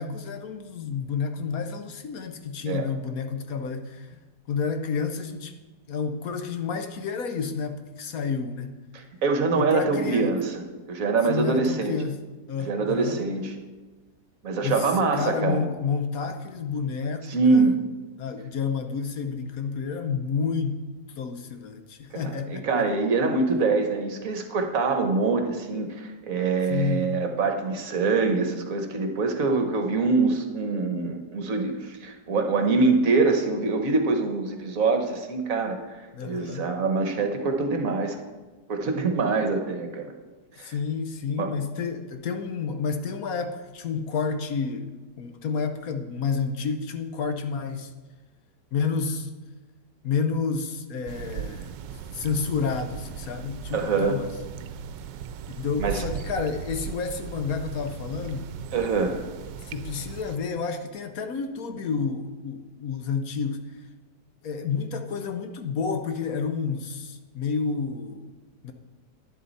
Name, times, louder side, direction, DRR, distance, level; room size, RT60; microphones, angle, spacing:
voice 1, 0.0-4.2 4.5-5.5 5.9-8.8 9.6-10.3 11.3-12.2 12.5-13.2 14.6-14.9 15.1-17.7 18.2-20.8 21.2-22.7 26.7-27.2 36.1-36.7 40.6-47.9 48.7-49.3 50.0-51.7 52.1-54.3 55.6-58.4 59.6-63.6 64.4-68.3 68.6-68.7, left 5 dB, 65° left, 7 dB, 1.1 m, -30 dB
voice 2, 8.9-11.9 12.6-13.5 14.4-15.7 17.3-17.7 22.1-35.8 36.2-38.2 38.7-40.1 40.6-40.7 41.4-41.5 53.7-54.2 55.8-56.0 58.7-59.2, right 4 dB, 55° right, 5 dB, 1.4 m, -24 dB
sound 1, 51.1-60.4, right 8 dB, 85° right, 1.3 m, -38 dB
11.0 x 10.5 x 4.1 m, 1.3 s
omnidirectional pair, 1.9 m